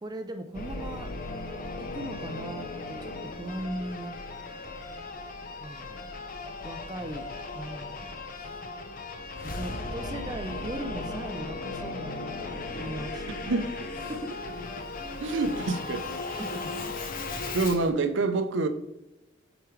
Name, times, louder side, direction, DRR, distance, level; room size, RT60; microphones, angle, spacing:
voice 1, 0.0-1.1 1.8-4.1 4.6-4.8 5.6-6.1 6.6-7.3 7.5-8.6 9.4-13.4 14.1-14.3 16.4-16.7, right 1 dB, 20° right, 0.4 m, -39 dB
Singing / Musical instrument, 0.5-17.9, left 3 dB, 45° left, 0.7 m, -37 dB
voice 2, 13.5-13.9 14.8-14.9 15.2-16.4 17.5-18.7, right 3 dB, 75° right, 0.6 m, -27 dB
7.9 x 4.8 x 3.2 m
head